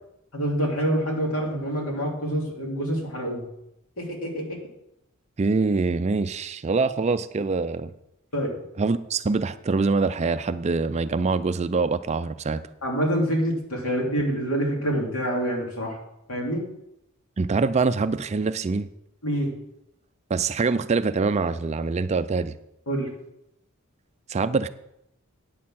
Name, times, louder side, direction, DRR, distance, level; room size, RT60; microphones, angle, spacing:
voice 1, 0.3-3.5 4.0-4.6 8.3-8.5 12.8-16.0 16.3-16.6 19.2-19.5 22.9-23.1, equal, 70° left, -1 dB, 2.9 m, -26 dB
voice 2, 5.4-7.9 8.8-12.6 17.4-18.9 20.3-22.6 24.3-24.7, right 4 dB, 30° right, 12 dB, 0.4 m, -24 dB
9.4 x 6.5 x 7.5 m, 0.82 s
head